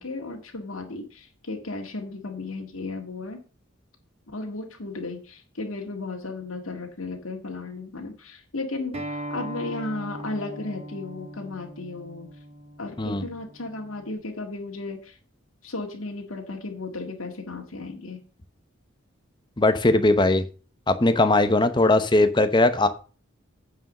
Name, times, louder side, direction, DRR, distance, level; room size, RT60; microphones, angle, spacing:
voice 1, 0.0-3.4 4.3-12.3 12.8-15.2 15.6-18.2, left 3 dB, 85° left, 2 dB, 1.8 m, -35 dB
Acoustic guitar, 8.9-14.1, right 1 dB, 30° right, 2.3 m, -39 dB
voice 2, 19.6-20.4 20.9-22.9, left 2 dB, 20° left, 10 dB, 0.8 m, -19 dB
9.1 x 4.9 x 6.5 m, 0.37 s
head